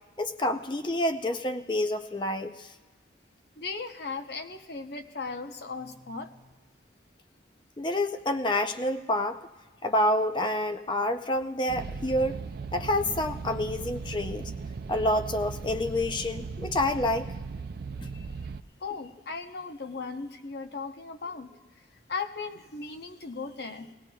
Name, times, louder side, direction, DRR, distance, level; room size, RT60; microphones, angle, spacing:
voice 1, 0.2-2.7 7.8-9.4 9.8-12.4 12.7-14.5 14.9-17.3 18.0-18.1, left 1 dB, 25° left, 8 dB, 0.5 m, -28 dB
voice 2, 3.6-6.6 18.1-18.4 18.8-21.8 22.1-23.9, left 4 dB, 60° left, 6 dB, 0.8 m, -37 dB
sound 1, 11.7-18.6, right 4 dB, 55° right, 0.4 m, -37 dB
21.5 x 17.0 x 2.3 m, 1.3 s
head